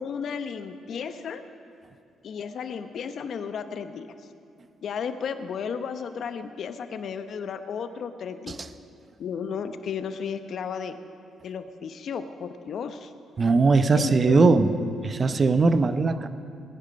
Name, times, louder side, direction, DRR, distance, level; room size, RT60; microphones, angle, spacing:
voice 1, 0.0-1.4 2.2-4.1 4.8-8.7 9.2-11.0 11.4-13.1 13.9-14.9, left 6 dB, 65° left, 9 dB, 0.9 m, -34 dB
voice 2, 13.4-14.7 15.0-16.3, right 4 dB, 40° right, 11 dB, 0.8 m, -20 dB
20.0 x 10.0 x 5.3 m, 2.5 s
cardioid pair, 90°, 0 cm